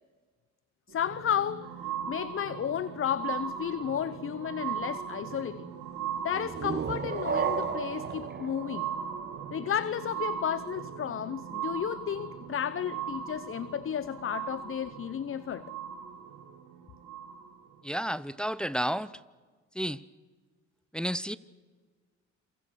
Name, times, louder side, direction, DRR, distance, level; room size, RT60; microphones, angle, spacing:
voice 1, 0.9-1.7 2.1-5.7 6.2-8.9 9.5-15.7, left 9 dB, 45° left, 0.7 m, -33 dB
sound 1, 0.9-17.8 18.5-18.6, right 8 dB, 90° right, 2.9 m, -38 dB
sound 2, 6.3-9.9, right 6 dB, 35° right, 1.3 m, -34 dB
voice 2, 17.8-19.1 19.8-20.0 20.9-21.4, equal, 5° left, 0.8 m, -31 dB
27.5 x 24.5 x 6.3 m
cardioid pair, 90°, 30 cm